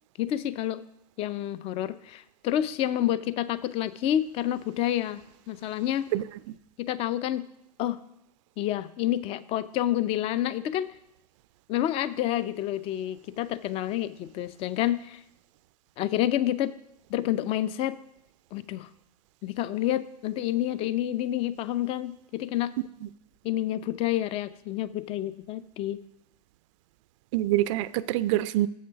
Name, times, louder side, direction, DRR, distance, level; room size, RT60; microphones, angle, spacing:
voice 1, 0.2-0.8 1.2-6.1 6.8-7.4 7.8-8.0 8.6-10.9 11.7-15.2 16.0-16.7 17.1-18.0 18.5-18.9 19.4-22.7 23.4-26.0, left 12 dB, 30° left, 16 dB, 0.4 m, -29 dB
voice 2, 6.1-6.6 23.0-23.1 27.3-28.7, right 15 dB, 50° right, 16 dB, 0.4 m, -26 dB
7.5 x 6.5 x 5.6 m, 0.80 s
hypercardioid pair, 115°, 20 cm